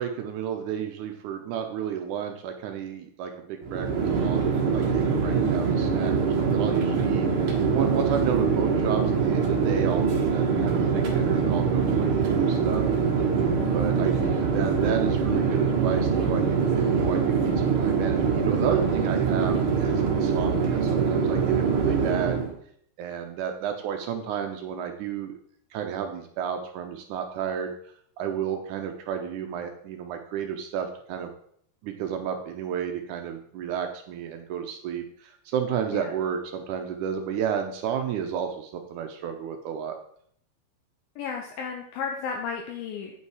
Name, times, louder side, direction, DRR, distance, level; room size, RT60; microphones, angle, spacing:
voice 1, 0.0-4.4 4.7-7.3 7.7-12.8 13.7-22.4 23.0-25.4 25.7-27.7 28.2-31.3 31.8-40.0, right 8 dB, 85° right, 4 dB, 1.7 m, -32 dB
Chatter / Fixed-wing aircraft airplane, 3.6-22.5, right 5 dB, 65° right, 1.3 m, -24 dB
voice 2, 41.2-43.1, left 6 dB, 80° left, 2 dB, 2.4 m, -33 dB
9.0 x 5.6 x 4.7 m, 0.65 s
omnidirectional pair, 4.5 m